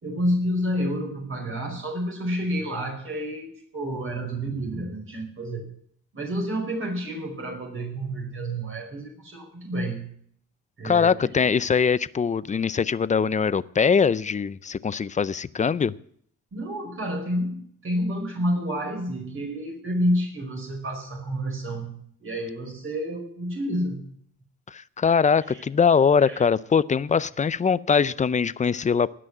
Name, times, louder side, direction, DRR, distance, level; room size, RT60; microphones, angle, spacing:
voice 1, 0.0-5.7 6.1-10.1 10.8-11.3 16.5-24.1 25.5-25.6 26.2-26.4, equal, 40° right, 1 dB, 5.0 m, -29 dB
voice 2, 10.8-15.9 24.7-29.1, left 6 dB, 25° left, 18 dB, 0.5 m, -22 dB
18.5 x 6.3 x 7.9 m, 0.64 s
cardioid pair, 95°, 32 cm